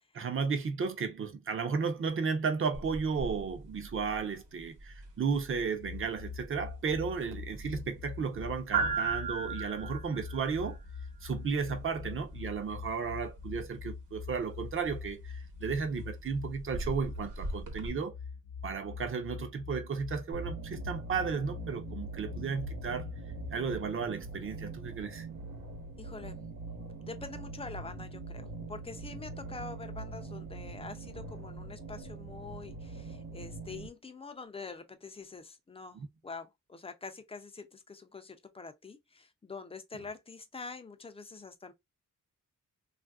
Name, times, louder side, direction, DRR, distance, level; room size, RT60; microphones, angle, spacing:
voice 1, 0.1-10.8 11.2-18.2 18.6-23.1 23.5-25.3 35.9-36.1, right 5 dB, 40° right, 0.6 m, -34 dB
sound 1, 2.7-17.9, right 4 dB, 70° right, 1.0 m, -40 dB
sound 2, 5.8-23.8, left 6 dB, 50° left, 0.7 m, -44 dB
sound 3, 20.3-33.9, right 3 dB, 90° right, 1.1 m, -43 dB
voice 2, 26.0-26.4 27.0-28.4 28.7-41.7, left 4 dB, 20° left, 0.4 m, -45 dB
3.3 x 2.5 x 2.3 m
wide cardioid pair, 150°, 32 cm